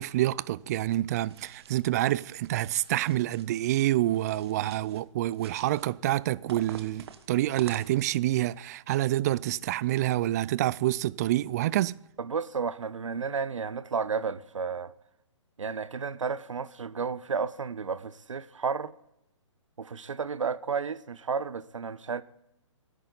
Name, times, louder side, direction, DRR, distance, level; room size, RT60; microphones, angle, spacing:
voice 1, 0.0-12.0, right 14 dB, 30° right, 0.4 m, -27 dB
sound 1, 1.2-1.9 2.3-3.5 4.1-5.0 5.3-5.9 6.5-8.3, right 7 dB, 55° right, 1.6 m, -47 dB
voice 2, 12.2-14.9 15.6-18.9 19.8-22.2, right 5 dB, 75° right, 1.0 m, -32 dB
25.0 x 10.5 x 4.0 m
figure-of-eight pair, 135°, 16 cm